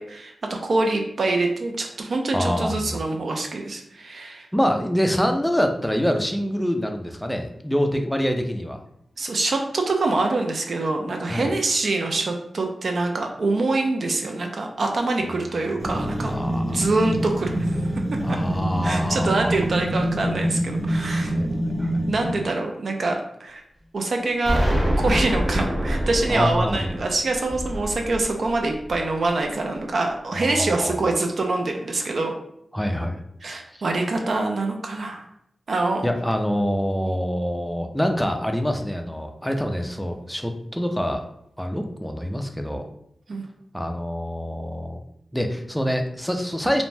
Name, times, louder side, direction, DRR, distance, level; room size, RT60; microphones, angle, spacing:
voice 1, 0.0-4.5 9.2-16.4 16.7-17.8 18.3-18.4 18.8-21.3 22.1-23.6 23.9-24.6 25.0-32.3 33.4-35.3 35.7-36.1 43.3-43.5, right 2 dB, 65° right, 3 dB, 0.4 m, -25 dB
voice 2, 2.3-3.0 4.5-8.8 11.3-11.5 15.3-15.4 16.3-16.8 18.2-19.5 21.3-21.5 21.8-22.0 26.3-26.9 30.3-31.0 32.7-33.2 33.7-33.8 36.0-41.3 41.6-42.8 43.7-45.0 45.3-46.8, equal, 5° left, 4 dB, 0.4 m, -25 dB
sound 1, 15.8-22.6, equal, 90° right, 1.1 m, -25 dB
Explosion, 24.4-29.3, equal, 10° right, 0.9 m, -26 dB
2.5 x 2.0 x 3.2 m, 0.72 s
cardioid pair, 70°, 0 cm